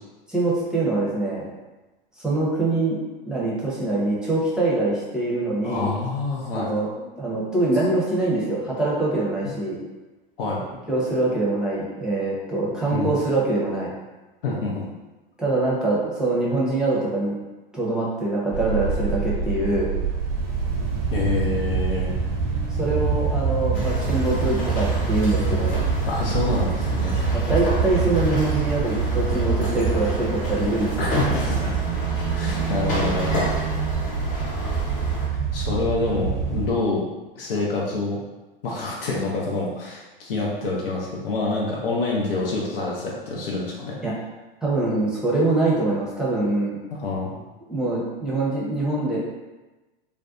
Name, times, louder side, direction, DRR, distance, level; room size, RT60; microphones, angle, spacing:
voice 1, 0.3-1.5 2.2-3.0 3.2-5.9 6.5-9.8 10.9-13.9 15.4-17.4 17.7-19.9 22.8-25.8 27.3-31.1 44.0-44.1 44.6-46.8 47.7-49.2, right 2 dB, ahead, -6 dB, 0.7 m, -24 dB
voice 2, 5.6-6.7 10.4-10.6 12.9-13.1 14.4-14.8 21.1-22.2 26.0-27.2 31.0-31.9 32.3-33.5 35.5-37.0 37.4-38.2 38.6-44.0 46.9-47.4, left 3 dB, 75° left, -4 dB, 0.6 m, -27 dB
sound 1, 18.5-36.7, right 5 dB, 45° right, 0.7 m, -25 dB
sound 2, 23.7-35.3, equal, 30° left, 0.8 m, -31 dB
2.5 x 2.2 x 2.4 m, 1.1 s
hypercardioid pair, 105°, 29 cm